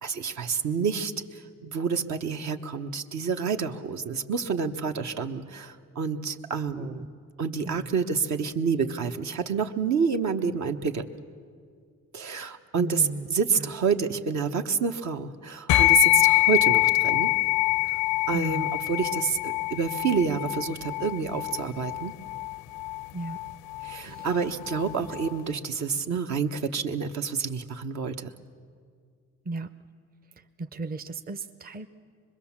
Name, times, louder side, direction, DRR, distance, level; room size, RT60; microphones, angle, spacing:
voice 1, 0.0-1.1 1.6-6.9 7.4-11.0 12.1-17.3 18.3-22.1 23.8-28.3, right 5 dB, 65° right, 6 dB, 1.2 m, -28 dB
voice 2, 12.7-13.3 13.6-13.7 18.3-18.8 23.1-23.4 24.0-24.3 26.1-26.2 29.5-29.7 30.6-31.9, right 3 dB, 30° right, 9 dB, 0.7 m, -35 dB
sound 1, 15.7-25.4, left 21 dB, 85° left, 0.5 m, -25 dB
25.0 x 21.5 x 7.3 m, 2.1 s
cardioid pair, 90°, 30 cm